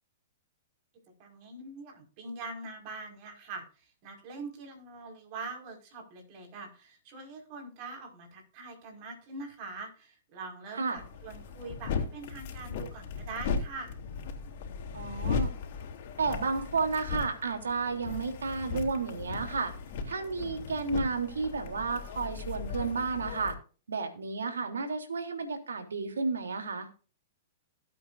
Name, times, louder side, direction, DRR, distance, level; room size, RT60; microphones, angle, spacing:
voice 1, 1.2-3.7 4.0-14.0, right 3 dB, 45° right, 3 dB, 5.3 m, -43 dB
sound 1, 11.0-23.5, left 5 dB, 60° left, 3.1 m, -37 dB
voice 2, 14.9-15.5 16.2-19.7 20.0-23.5 23.9-26.9, right 4 dB, 85° right, 5 dB, 3.3 m, -32 dB
18.0 x 8.6 x 2.7 m, 0.36 s
hypercardioid pair, 115°, 0 cm